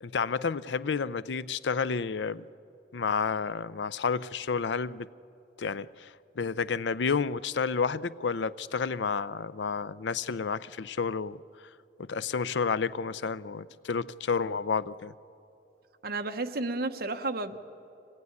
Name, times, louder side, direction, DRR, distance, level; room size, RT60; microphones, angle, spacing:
voice 1, 0.0-2.4 2.9-5.1 5.6-11.4 12.0-15.1, left 5 dB, 80° left, 0.5 m, -30 dB
voice 2, 16.0-17.6, right 2 dB, 55° right, 1.1 m, -32 dB
25.0 x 17.5 x 9.5 m
head